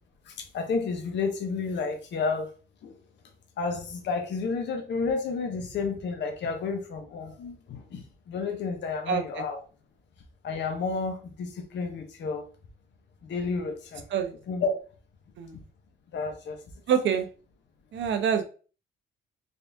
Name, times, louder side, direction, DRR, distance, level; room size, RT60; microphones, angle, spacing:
voice 1, 0.3-2.5 2.8-2.9 3.6-9.6 10.4-12.5 13.2-14.0 14.5-14.7 16.1-16.6, left 4 dB, 65° left, 0.9 m, -31 dB
voice 2, 9.1-9.5 14.1-14.3 15.4-15.6 16.9-17.3 17.9-18.5, right 7 dB, 70° right, 0.8 m, -26 dB
3.9 x 2.6 x 3.4 m
cardioid pair, 90°, 20 cm